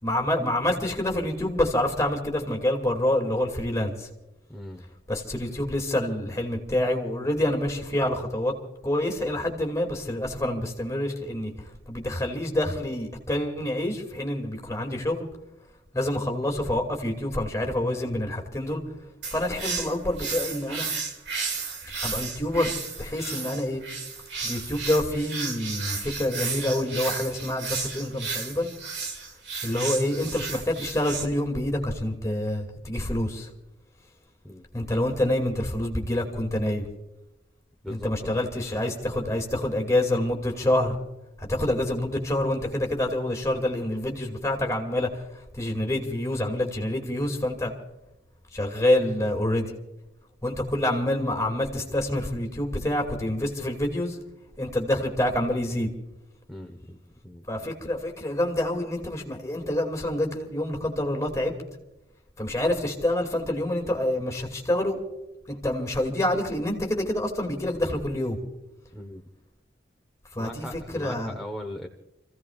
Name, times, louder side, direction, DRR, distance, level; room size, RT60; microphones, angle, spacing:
voice 1, 0.0-4.1 5.1-8.5 8.8-11.5 11.9-15.3 15.9-18.8 19.3-20.9 22.0-23.8 24.4-28.7 29.6-33.5 34.7-36.8 37.9-41.0 41.4-45.1 45.5-47.7 48.5-49.7 50.4-54.2 54.6-55.9 57.5-61.5 62.4-65.0 65.5-68.4 70.3-71.4, left 1 dB, 15° left, 2 dB, 2.3 m, -27 dB
voice 2, 4.5-4.9 34.4-34.6 37.8-38.4 56.5-57.0 57.2-57.7 68.9-69.2 70.4-71.9, left 1 dB, ahead, 0 dB, 1.0 m, -39 dB
sound 1, 19.2-31.2, right 5 dB, 60° right, 2.3 m, -33 dB
30.0 x 16.0 x 2.4 m, 0.98 s
head